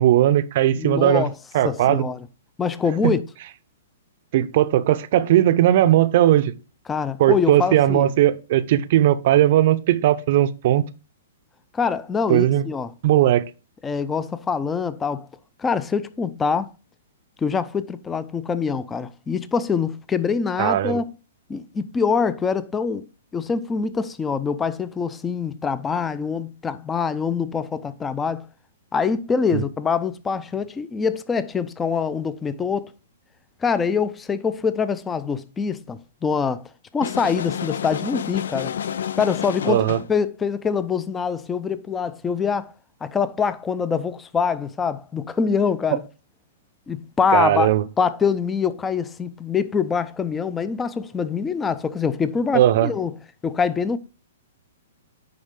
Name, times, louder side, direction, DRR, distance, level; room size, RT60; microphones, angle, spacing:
voice 1, 0.0-1.3 1.5-2.0 3.0-3.2 4.3-6.5 7.2-10.8 12.3-12.6 13.0-13.4 20.6-21.0 29.5-29.6 39.7-40.0 47.3-47.8 52.5-52.9, right 12 dB, 55° right, 0.6 m, -18 dB
voice 2, 0.8-1.3 1.6-2.3 2.6-3.2 6.9-8.1 11.7-12.9 13.8-15.3 15.6-16.7 17.4-21.0 21.5-23.0 23.3-28.5 28.9-32.9 33.6-36.6 36.9-38.7 39.2-39.8 40.1-42.7 43.0-46.0 46.9-47.7 48.0-53.1 53.4-54.0, left 6 dB, 15° left, 0.5 m, -24 dB
sound 1, 37.0-40.2, left 9 dB, 75° left, 0.3 m, -29 dB
9.8 x 4.0 x 3.7 m
hypercardioid pair, 130°, 0 cm